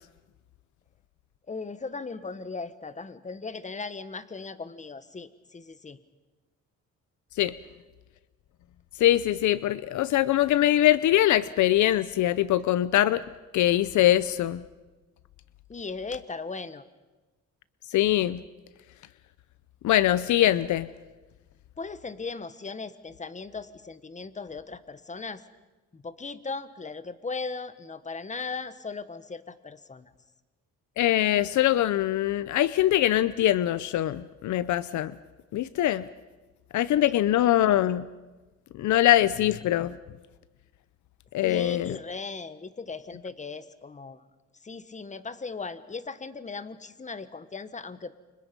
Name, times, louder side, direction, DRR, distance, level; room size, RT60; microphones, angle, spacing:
voice 1, 1.5-6.0 15.7-16.8 21.8-25.4 25.9-30.1 41.4-44.2 44.6-48.2, left 4 dB, 25° left, 13 dB, 1.4 m, -38 dB
voice 2, 9.0-13.2 13.5-14.6 17.9-18.4 19.8-20.9 31.0-35.1 35.5-36.1 36.7-38.1 38.8-40.0 41.3-42.0, left 13 dB, 75° left, 16 dB, 0.7 m, -23 dB
29.0 x 25.5 x 5.4 m, 1.2 s
cardioid pair, 90°, 30 cm